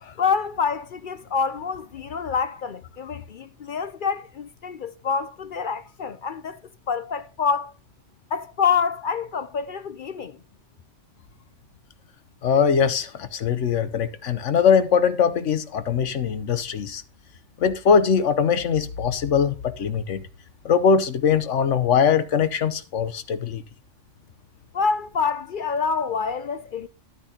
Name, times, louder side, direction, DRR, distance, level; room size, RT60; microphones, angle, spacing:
voice 1, 0.2-6.6 6.9-7.7 8.3-10.4 24.7-26.9, left 6 dB, 55° left, 0.6 m, -26 dB
voice 2, 12.4-17.0 17.6-20.2 20.6-23.6, left 6 dB, 80° left, 1.2 m, -21 dB
11.0 x 10.0 x 2.8 m
omnidirectional pair, 1.2 m